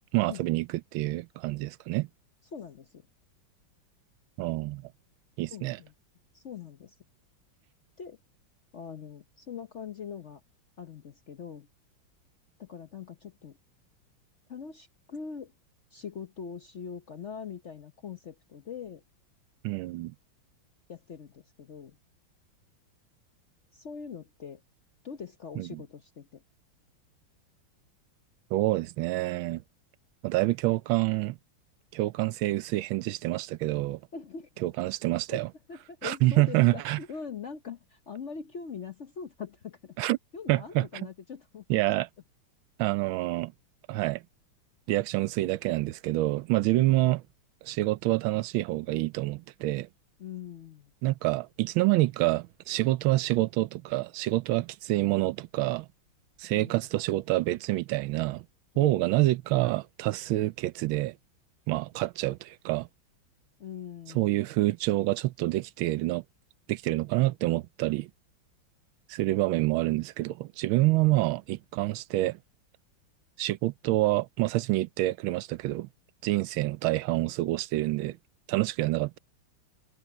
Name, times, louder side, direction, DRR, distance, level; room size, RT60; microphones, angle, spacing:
voice 1, 0.1-2.1 4.4-4.9 5.4-5.8 19.6-20.1 25.6-25.8 28.5-29.6 30.2-31.4 31.9-34.0 34.6-35.5 36.0-37.0 40.0-40.2 40.5-40.9 41.7-42.1 42.8-43.5 43.9-44.2 44.9-47.2 47.6-49.9 51.0-55.9 56.4-58.4 58.8-61.1 61.7-62.9 64.1-66.2 66.7-68.1 69.1-72.4 73.4-75.9 76.2-78.2 78.5-79.2, right 18 dB, 80° right, 1.4 m, -27 dB
voice 2, 2.5-3.1 5.5-5.9 6.3-7.0 8.0-8.2 8.7-10.4 10.8-11.7 12.6-13.6 14.5-15.5 15.9-19.0 20.9-22.0 23.7-24.6 25.0-26.4 34.1-34.5 35.3-35.4 35.7-41.8 46.9-47.0 50.2-50.9 56.5-56.8 58.7-59.0 63.6-64.5, left 6 dB, 55° left, 0.8 m, -42 dB
omnidirectional pair, 2.2 m